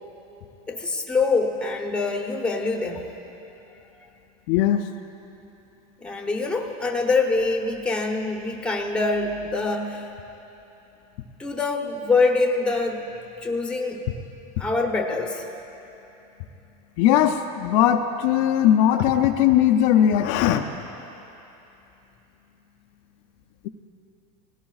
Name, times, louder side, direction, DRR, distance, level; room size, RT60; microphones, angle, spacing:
voice 1, 0.7-3.0 6.0-10.1 11.4-13.1 13.4-14.0 14.6-15.5, left 3 dB, 5° left, 1 dB, 1.0 m, -24 dB
voice 2, 4.5-4.9 17.0-20.6, left 10 dB, 60° left, 5 dB, 0.6 m, -19 dB
19.5 x 17.0 x 2.4 m, 2.9 s
supercardioid pair, 140°, 19 cm